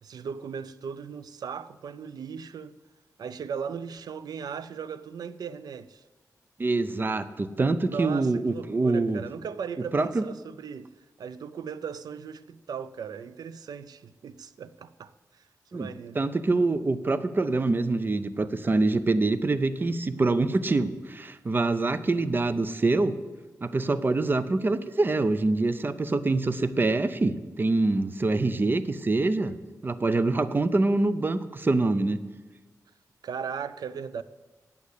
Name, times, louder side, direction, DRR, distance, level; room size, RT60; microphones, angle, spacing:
voice 1, 0.0-2.7 3.2-6.0 7.9-10.9 11.2-15.4 15.7-16.2 33.2-34.2, right 6 dB, 90° right, 15 dB, 0.4 m, -37 dB
voice 2, 6.6-9.2 9.9-10.2 15.7-15.9 16.1-23.1 23.6-29.5 29.8-32.2, right 3 dB, 30° right, 13 dB, 0.6 m, -25 dB
8.4 x 8.3 x 8.2 m, 1.2 s
wide cardioid pair, 100°, 7 cm